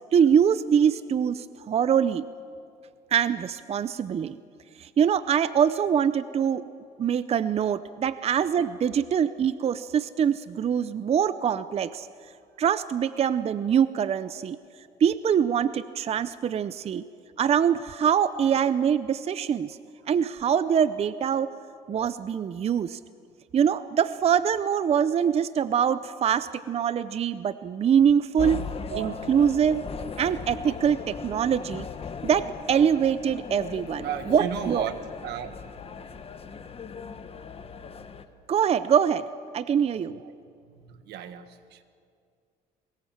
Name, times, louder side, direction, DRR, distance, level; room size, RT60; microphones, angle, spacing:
voice 1, 0.1-2.3 3.1-4.4 4.8-6.6 7.0-12.1 12.6-14.6 15.0-17.0 17.4-19.8 20.1-21.5 21.9-23.0 23.5-28.6 29.0-29.8 30.2-31.9 32.2-34.9 38.5-39.3 39.5-40.2, right 8 dB, 40° right, 0.6 m, -24 dB
sound 1, 28.4-38.2, left 5 dB, 35° left, 1.3 m, -38 dB
voice 2, 28.9-29.3 31.0-31.2 34.0-35.5 40.0-40.4 40.7-41.8, right 9 dB, 80° right, 1.5 m, -35 dB
23.5 x 20.5 x 7.3 m
cardioid pair, 110°, 17 cm